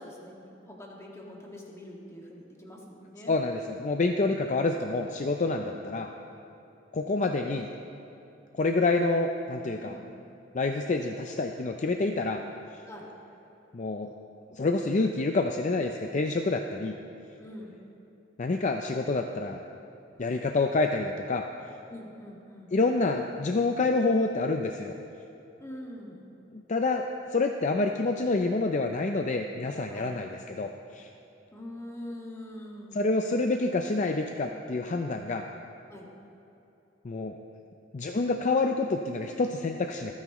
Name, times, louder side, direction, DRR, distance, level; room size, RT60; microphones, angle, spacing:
voice 1, 0.0-3.3 5.6-5.9 9.8-10.1 12.8-13.1 17.4-17.8 21.9-22.7 25.6-26.3 29.9-30.1 31.5-33.0 35.9-36.1, left 1 dB, 15° left, -2 dB, 1.9 m, -44 dB
voice 2, 3.3-6.1 6.9-7.7 8.5-10.0 10.5-12.4 13.7-14.1 14.5-16.9 18.4-19.6 20.2-21.4 22.7-24.9 26.5-27.1 27.3-31.1 32.9-35.5 37.0-37.4 37.9-40.1, left 3 dB, 40° left, 4 dB, 0.5 m, -27 dB
26.0 x 9.5 x 3.1 m, 2.9 s
head